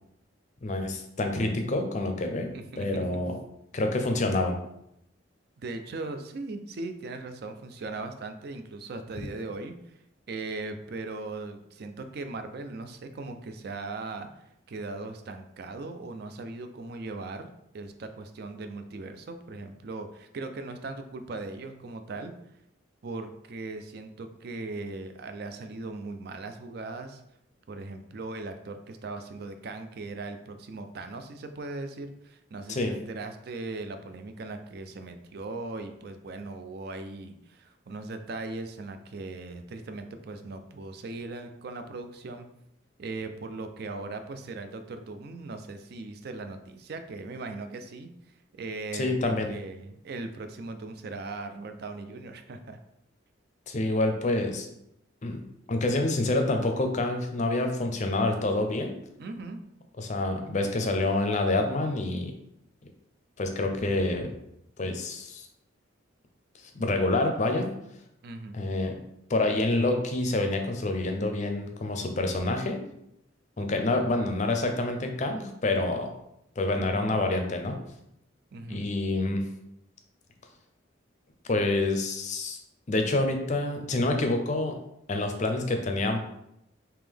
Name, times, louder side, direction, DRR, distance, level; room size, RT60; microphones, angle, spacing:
voice 1, 0.6-2.5 2.8-3.4 3.7-4.6 32.7-32.9 48.9-49.5 53.7-54.7 55.2-55.4 55.7-59.0 60.0-62.3 63.4-64.3 64.8-65.4 66.7-67.8 68.5-69.0 69.3-72.8 73.6-76.1 76.6-77.8 78.7-79.5 81.5-82.6 82.9-84.8 85.1-86.2, left 2 dB, 40° left, 5 dB, 0.5 m, -27 dB
voice 2, 2.4-3.0 5.6-9.9 10.3-14.3 14.7-17.5 17.7-22.3 23.0-27.2 27.7-42.5 43.0-48.1 48.5-52.8 59.2-59.6 68.2-68.6 73.6-74.0 76.8-77.2 78.5-78.9, right 3 dB, 55° right, 7 dB, 0.4 m, -39 dB
3.6 x 2.9 x 3.4 m, 0.80 s
head